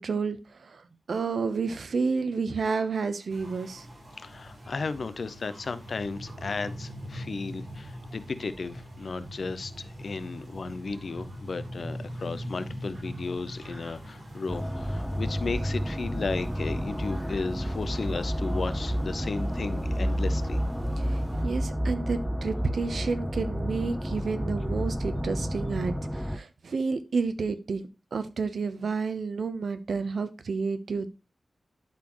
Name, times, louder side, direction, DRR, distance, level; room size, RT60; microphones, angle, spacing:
voice 1, 0.0-3.9 21.0-31.1, right 4 dB, 80° right, 0.8 m, -30 dB
sound 1, 3.3-21.4, equal, 50° right, 4.6 m, -42 dB
voice 2, 4.2-20.6, left 4 dB, 60° left, 0.6 m, -34 dB
sound 2, 14.5-26.4, equal, ahead, 0.5 m, -30 dB
11.5 x 4.2 x 3.0 m
wide cardioid pair, 105°, 0 cm